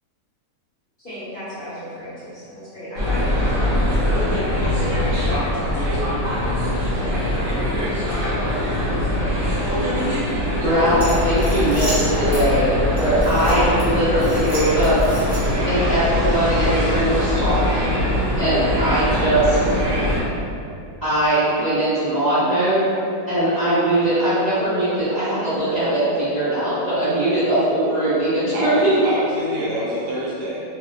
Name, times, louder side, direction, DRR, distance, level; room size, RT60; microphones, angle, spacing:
voice 1, 1.0-4.3 4.8-8.8, equal, 35° left, -15 dB, 1.1 m, -35 dB
sound 1, 2.9-20.2, left 1 dB, 55° right, 1.0 m, -22 dB
voice 2, 10.6-15.0 15.7-17.9 18.4-19.8 21.0-22.8 23.3-28.9, right 1 dB, 35° right, -16 dB, 0.7 m, -20 dB
sound 2, 11.0-12.4 13.0-13.8 14.2-15.6, equal, 15° right, 1.1 m, -33 dB
sound 3, 12.5-18.7, equal, 65° left, 0.9 m, -36 dB
voice 3, 28.5-30.6, equal, 80° right, -6 dB, 1.2 m, -26 dB
2.9 x 2.8 x 2.2 m, 2.5 s
omnidirectional pair, 1.9 m